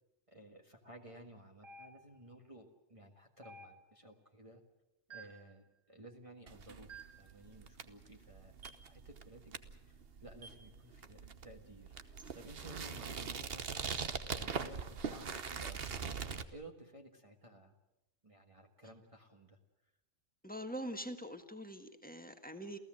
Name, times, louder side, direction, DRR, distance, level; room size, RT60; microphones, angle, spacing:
voice 1, 0.3-4.6 5.1-17.7 18.2-19.6, right 1 dB, 25° right, 1 dB, 1.8 m, -55 dB
sound 1, 1.6-2.3 3.4-4.1 5.1-5.5 6.9-7.3 8.6-8.9 10.4-10.7 12.2-12.4 14.0-14.2, right 3 dB, 90° right, 1.9 m, -54 dB
sound 2, 6.5-16.4, right 6 dB, 50° right, 1.2 m, -43 dB
voice 2, 20.4-22.8, equal, 5° left, 6 dB, 1.6 m, -44 dB
28.5 x 16.0 x 7.7 m, 0.93 s
omnidirectional pair, 1.3 m